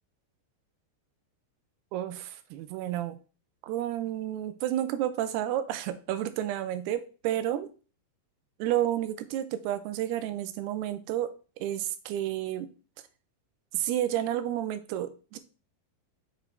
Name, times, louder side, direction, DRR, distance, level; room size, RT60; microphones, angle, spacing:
voice 1, 1.9-3.2 3.6-7.7 8.6-12.7 13.7-15.4, right 12 dB, 80° right, 10 dB, 2.5 m, -31 dB
6.8 x 4.8 x 3.3 m, 0.37 s
omnidirectional pair, 4.9 m